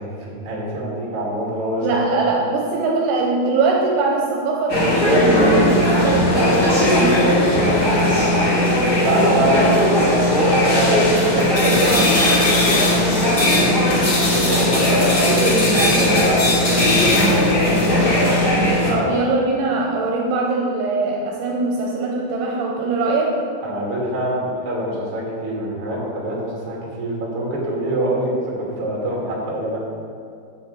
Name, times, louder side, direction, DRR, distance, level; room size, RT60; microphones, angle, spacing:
voice 1, 0.0-2.0 8.1-8.4 9.0-13.8 14.2-18.1 18.8-19.2 23.6-29.8, right 1 dB, 40° right, -4 dB, 2.2 m, -25 dB
voice 2, 1.8-7.4 18.9-23.4, right 3 dB, 80° right, -1 dB, 3.0 m, -22 dB
sound 1, 4.7-18.9, left 1 dB, 30° left, 2.1 m, -17 dB
7.4 x 6.4 x 7.9 m, 2.4 s
omnidirectional pair, 5.7 m